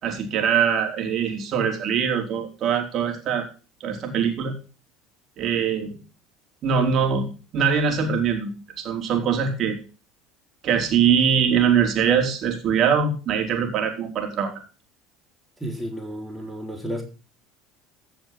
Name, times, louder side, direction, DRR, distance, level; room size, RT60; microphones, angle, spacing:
voice 1, 0.0-3.5 3.8-4.5 5.4-5.9 6.6-7.3 7.5-9.8 10.6-14.5, right 7 dB, 50° right, 3 dB, 4.6 m, -22 dB
voice 2, 15.6-17.0, equal, 5° right, 2 dB, 4.0 m, -32 dB
15.5 x 7.0 x 6.0 m, 0.35 s
hypercardioid pair, 80°, 0 cm